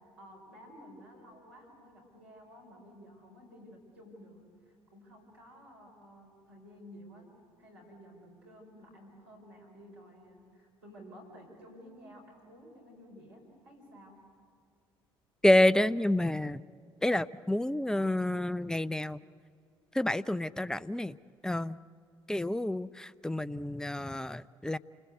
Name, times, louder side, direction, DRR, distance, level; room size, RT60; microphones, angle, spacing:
voice 1, 0.2-7.3 7.6-14.2, equal, 85° right, 0 dB, 5.5 m, -53 dB
voice 2, 15.4-16.6 17.0-19.2 19.9-21.2 21.4-21.8 22.3-24.8, left 1 dB, 5° left, 17 dB, 0.6 m, -28 dB
29.0 x 20.5 x 8.2 m, 2.2 s
hypercardioid pair, 55°, 13 cm